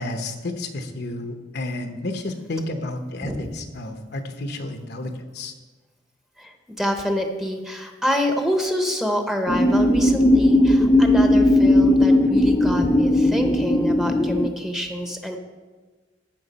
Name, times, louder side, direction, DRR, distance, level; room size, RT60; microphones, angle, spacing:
voice 1, 0.0-5.5, left 2 dB, 60° left, 6 dB, 0.9 m, -31 dB
voice 2, 3.2-3.6 6.4-15.4, equal, 5° right, 4 dB, 0.9 m, -27 dB
sound 1, 9.5-14.5, left 1 dB, 20° left, 0.5 m, -17 dB
14.5 x 6.1 x 4.2 m, 1.3 s
head